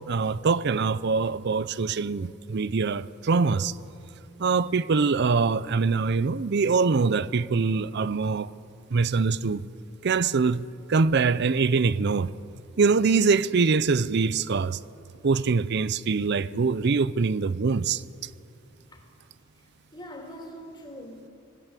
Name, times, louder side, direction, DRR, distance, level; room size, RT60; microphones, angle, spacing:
voice 1, 0.0-3.7 4.4-8.5 8.9-9.7 10.0-12.3 12.8-14.8 15.2-18.3, right 4 dB, 55° right, 0.5 m, -24 dB
voice 2, 19.9-21.3, equal, 20° left, 3.1 m, -42 dB
20.0 x 18.0 x 8.4 m
head